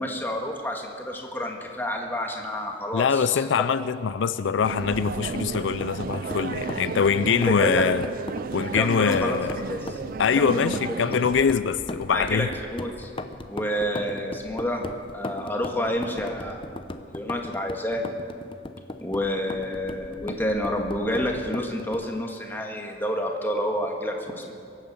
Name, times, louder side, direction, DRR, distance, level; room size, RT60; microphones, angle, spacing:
voice 1, 0.0-3.4 7.6-7.8 8.6-10.0 10.4-10.7 12.1-13.1 13.5-14.9 15.1-16.6 17.1-18.0 19.0-24.5, equal, 10° left, 1 dB, 1.7 m, -29 dB
voice 2, 2.9-8.1 8.5-9.6 10.2-12.5, left 6 dB, 80° left, 13 dB, 0.4 m, -23 dB
sound 1, 4.6-11.5, right 5 dB, 50° right, 0.4 m, -34 dB
sound 2, 4.7-22.2, left 2 dB, 30° left, 0.7 m, -38 dB
23.0 x 9.0 x 6.9 m, 2.4 s
head